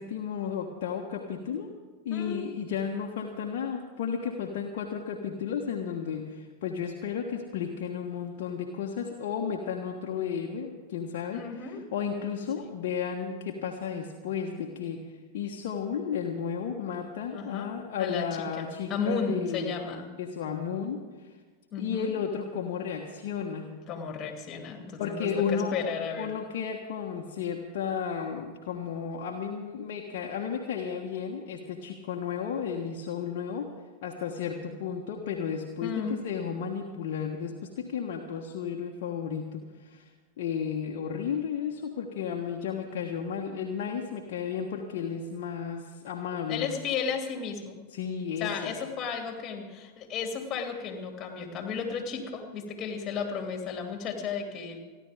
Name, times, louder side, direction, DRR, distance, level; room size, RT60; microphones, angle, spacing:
voice 1, 0.0-1.7 2.0-15.0 15.3-19.8 20.2-21.3 21.8-23.7 25.0-25.9 26.2-33.7 34.0-40.0 40.4-46.7 47.9-48.8, left 7 dB, 50° left, 1 dB, 1.3 m, -33 dB
voice 2, 2.1-2.5 11.3-11.8 17.3-17.7 18.0-20.1 21.7-22.1 23.9-26.3 35.8-36.2 46.5-47.8 48.4-54.8, left 5 dB, 30° left, 4 dB, 2.7 m, -34 dB
29.5 x 11.5 x 3.6 m, 1.4 s
figure-of-eight pair, 90°, 0 cm